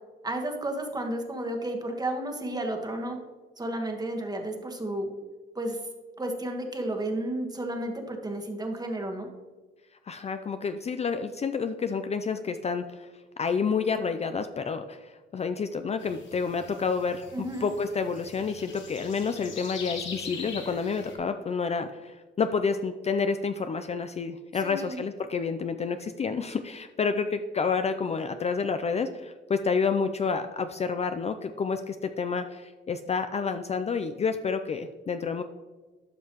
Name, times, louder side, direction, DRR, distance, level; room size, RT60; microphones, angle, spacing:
voice 1, 0.2-3.2 3.6-5.1 5.5-5.8 6.2-9.3 17.3-17.7 24.6-25.0, right 1 dB, 20° right, 3 dB, 1.3 m, -32 dB
voice 2, 10.1-13.1 13.4-35.4, left 5 dB, 35° left, 9 dB, 0.4 m, -29 dB
sound 1, 16.0-21.1, left 5 dB, 70° left, 1.7 m, -42 dB
12.0 x 5.4 x 3.0 m, 1.3 s
cardioid pair, 90°, 20 cm